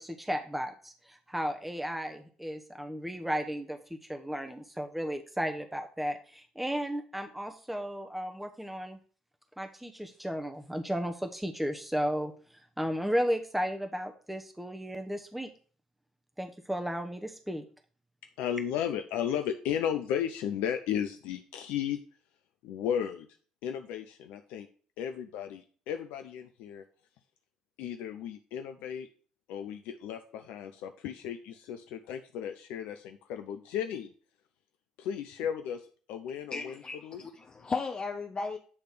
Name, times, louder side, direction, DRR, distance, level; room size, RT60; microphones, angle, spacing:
voice 1, 0.0-9.0 9.6-15.5 16.4-17.6, equal, 5° right, 5 dB, 0.9 m, -34 dB
voice 2, 18.4-22.0 22.6-23.3 23.6-24.7 25.0-26.8 27.8-29.1 29.5-34.1 35.0-37.2, left 9 dB, 75° left, 7 dB, 0.5 m, -34 dB
voice 3, 36.5-38.6, left 4 dB, 35° left, 3 dB, 0.8 m, -35 dB
8.5 x 3.3 x 5.9 m, 0.42 s
hypercardioid pair, 50°, 3 cm